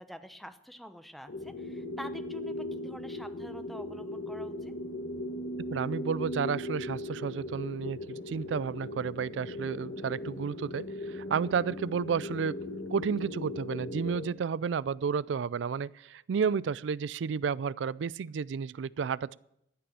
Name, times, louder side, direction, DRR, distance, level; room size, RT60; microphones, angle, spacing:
voice 1, 0.0-4.7, equal, ahead, 0.8 m, -47 dB
sound 1, 1.3-14.3, left 1 dB, 90° left, 1.3 m, -38 dB
voice 2, 5.7-12.6 12.9-19.4, right 6 dB, 85° right, 0.4 m, -32 dB
13.5 x 6.7 x 8.8 m
head